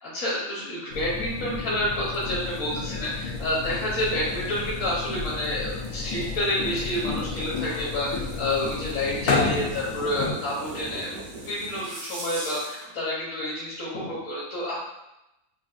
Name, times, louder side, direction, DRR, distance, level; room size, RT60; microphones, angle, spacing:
voice 1, 0.0-11.1 11.4-14.8, left 1 dB, 60° left, -7 dB, 1.2 m, -29 dB
sound 1, 0.9-10.3, left 4 dB, 85° left, 1.2 m, -31 dB
sound 2, 1.9-12.9, right 2 dB, 50° right, 0.6 m, -42 dB
5.3 x 2.5 x 2.4 m, 0.89 s
omnidirectional pair, 1.6 m